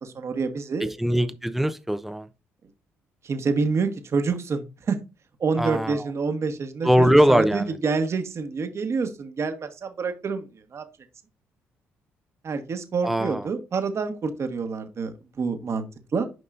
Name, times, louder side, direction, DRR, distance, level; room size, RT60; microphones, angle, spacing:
voice 1, 0.0-0.9 3.2-5.0 5.4-10.5 10.7-10.8 12.4-15.9 16.1-16.3, right 4 dB, 50° right, 1.5 m, -27 dB
voice 2, 0.8-2.3 5.6-6.0 6.8-7.8 13.0-13.5, equal, 5° right, 0.8 m, -21 dB
9.4 x 5.3 x 2.6 m
hypercardioid pair, 50°, 6 cm